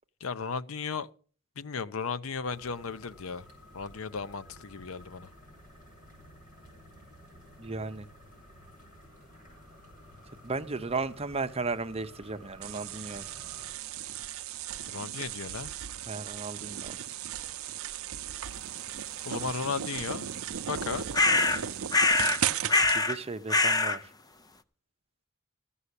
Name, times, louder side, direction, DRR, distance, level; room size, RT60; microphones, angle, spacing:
voice 1, 0.2-1.1 1.6-3.4 3.7-5.3 14.9-15.7 19.2-20.3 20.7-21.1, left 5 dB, 80° left, 0.6 m, -35 dB
sound 1, 2.4-13.7, equal, 40° left, 5.5 m, -53 dB
voice 2, 7.6-8.1 10.4-13.3 16.1-17.2 22.9-24.1, right 3 dB, 30° right, 0.7 m, -35 dB
sound 2, 12.6-23.0, right 10 dB, 80° right, 0.6 m, -36 dB
sound 3, 21.1-21.6 21.9-22.4 22.7-23.2 23.5-24.0, left 3 dB, 20° left, 0.7 m, -23 dB
14.5 x 5.6 x 8.2 m
head